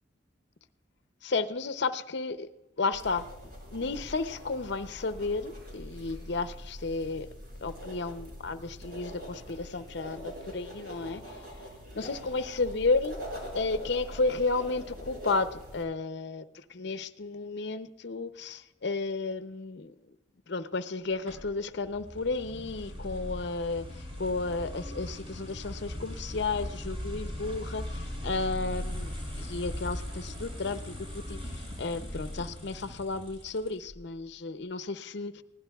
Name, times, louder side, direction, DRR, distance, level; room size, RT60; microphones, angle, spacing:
voice 1, 1.2-2.5 2.8-3.3 3.7-7.3 7.6-11.2 11.9-13.2 13.5-19.9 20.5-35.4, left 3 dB, 65° left, 12 dB, 0.6 m, -33 dB
sound 1, 2.9-15.8, equal, 50° right, 5.0 m, -43 dB
sound 2, 21.3-34.0, left 1 dB, 30° right, 5.8 m, -39 dB
20.5 x 16.0 x 2.3 m, 1.0 s
head